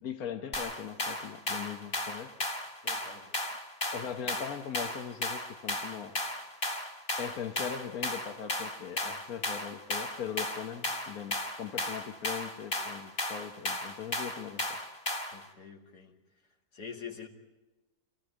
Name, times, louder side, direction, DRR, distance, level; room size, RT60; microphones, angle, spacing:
voice 1, 0.0-2.3 3.9-6.1 7.2-14.8, left 8 dB, 65° left, 6 dB, 1.4 m, -40 dB
sound 1, 0.5-15.4, left 1 dB, 40° left, 2.7 m, -35 dB
voice 2, 2.8-3.3 15.3-16.1 16.7-17.3, left 6 dB, 85° left, 2 dB, 2.9 m, -45 dB
25.5 x 15.5 x 9.0 m, 1.1 s
omnidirectional pair, 1.7 m